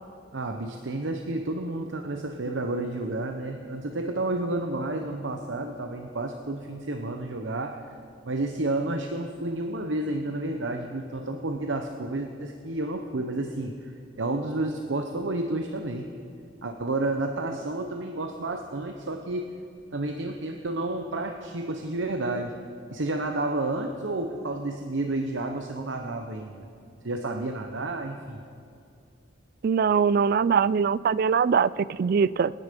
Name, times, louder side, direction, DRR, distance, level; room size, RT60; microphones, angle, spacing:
voice 1, 0.3-7.9 8.2-16.1 16.6-19.5 19.9-22.6 22.9-26.7 27.0-28.4, right 2 dB, 85° right, 5 dB, 0.9 m, -31 dB
voice 2, 29.6-31.7 32.0-32.5, right 6 dB, 55° right, 20 dB, 0.3 m, -22 dB
27.0 x 10.0 x 5.2 m, 2.5 s
head